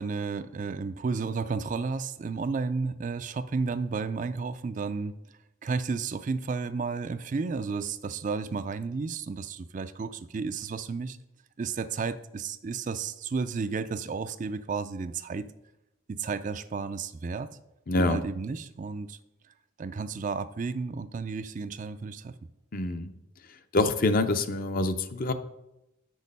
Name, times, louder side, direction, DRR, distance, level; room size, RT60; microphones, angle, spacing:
voice 1, 0.0-5.2 5.6-11.2 11.6-15.5 16.1-17.5 18.0-19.2 19.8-22.4, right 4 dB, 40° right, 12 dB, 0.4 m, -32 dB
voice 2, 17.9-18.2 22.7-23.1 23.7-25.3, left 2 dB, 45° left, 10 dB, 0.6 m, -26 dB
8.3 x 6.3 x 5.3 m, 0.89 s
head